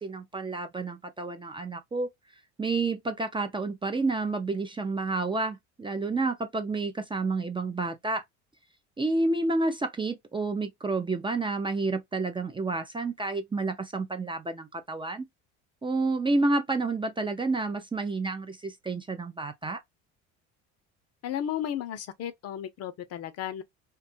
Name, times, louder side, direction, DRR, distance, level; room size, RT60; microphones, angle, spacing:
voice 1, 0.0-2.1 2.6-8.2 9.0-15.3 15.8-19.8, right 3 dB, 15° right, 0.5 m, -29 dB
voice 2, 21.2-23.6, left 10 dB, 50° left, 0.6 m, -34 dB
2.6 x 2.3 x 2.6 m
supercardioid pair, 85°, 34 cm